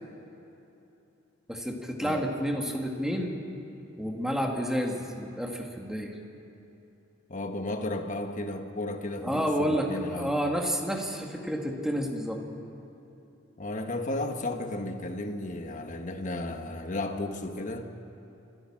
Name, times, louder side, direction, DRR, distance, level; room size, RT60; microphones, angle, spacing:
voice 1, 1.5-3.4 4.0-6.1 9.2-12.4, equal, 5° right, 2 dB, 1.8 m, -30 dB
voice 2, 7.3-10.3 13.6-17.9, left 2 dB, 40° left, 5 dB, 1.4 m, -34 dB
28.0 x 13.5 x 7.4 m, 2.9 s
head